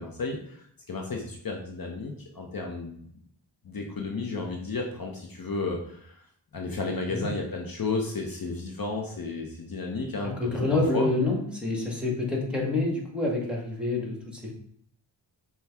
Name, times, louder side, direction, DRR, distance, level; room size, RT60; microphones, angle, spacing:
voice 1, 0.0-3.1 3.6-6.2 6.5-10.3 10.9-11.1, left 3 dB, 50° left, 0 dB, 0.7 m, -33 dB
voice 2, 10.4-14.5, left 2 dB, ahead, -3 dB, 1.3 m, -27 dB
5.7 x 2.3 x 3.4 m, 0.66 s
wide cardioid pair, 60°, 45 cm